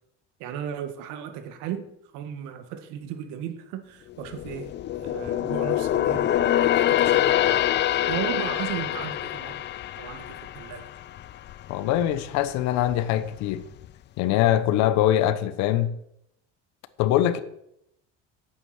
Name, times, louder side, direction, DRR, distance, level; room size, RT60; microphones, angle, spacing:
voice 1, 0.4-1.9 2.1-7.7 8.1-9.7 10.0-10.9, right 9 dB, 80° right, 1.8 m, -35 dB
sound 1, 4.1-11.7 12.0-12.3 12.8-13.5 13.8-13.9, left 12 dB, 40° left, 0.5 m, -25 dB
voice 2, 11.7-13.7 14.2-15.9 17.0-17.4, left 12 dB, 70° left, 1.1 m, -23 dB
9.4 x 8.8 x 7.6 m
cardioid pair, 130°, 29 cm